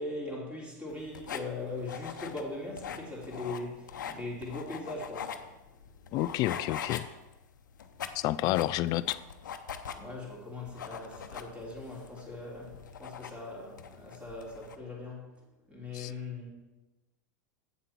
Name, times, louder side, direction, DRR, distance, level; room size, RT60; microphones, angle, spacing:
voice 1, 0.0-5.3 10.0-15.3 15.7-16.5, left 2 dB, 10° right, -3 dB, 3.5 m, -40 dB
sound 1, 0.9-14.8, left 8 dB, 85° left, 0.7 m, -43 dB
voice 2, 6.1-7.1 8.1-9.2 15.9-16.1, left 16 dB, 40° left, 18 dB, 0.4 m, -29 dB
8.3 x 7.4 x 4.6 m, 1.1 s
hypercardioid pair, 105°, 10 cm